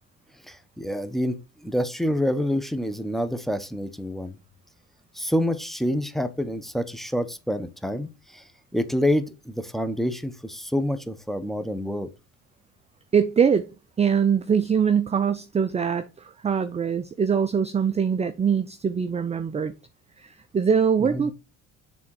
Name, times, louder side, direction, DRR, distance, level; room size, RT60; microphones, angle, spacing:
voice 1, 0.5-4.4 5.1-12.1 21.1-21.3, equal, ahead, 0.9 m, -27 dB
voice 2, 13.1-13.7 14.0-19.7 20.2-21.3, right 7 dB, 20° right, 0.5 m, -23 dB
7.1 x 3.6 x 4.7 m
hypercardioid pair, 65°, 36 cm